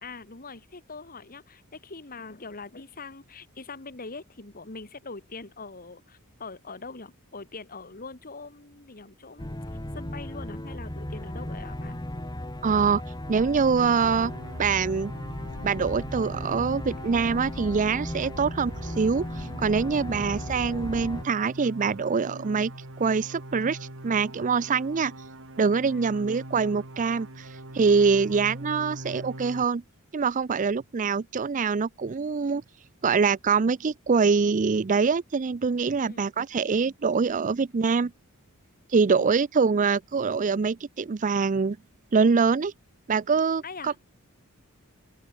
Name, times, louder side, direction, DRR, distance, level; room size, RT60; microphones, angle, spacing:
voice 1, 0.0-9.6 9.9-12.0 25.9-26.1 36.0-36.3 39.2-39.3 43.6-44.0, left 3 dB, 40° left, 2.0 m, -42 dB
sound 1, 9.4-21.2, left 1 dB, 20° left, 1.8 m, -36 dB
voice 2, 12.6-13.0 13.3-14.3 14.6-15.1 15.6-22.7 23.0-23.8 24.0-25.1 25.6-27.5 27.7-29.8 30.1-32.6 33.0-38.1 38.9-41.8 42.1-42.7 43.1-43.9, right 5 dB, 35° right, 0.4 m, -24 dB
sound 2, 13.4-29.6, right 1 dB, 60° right, 3.9 m, -42 dB
open air
head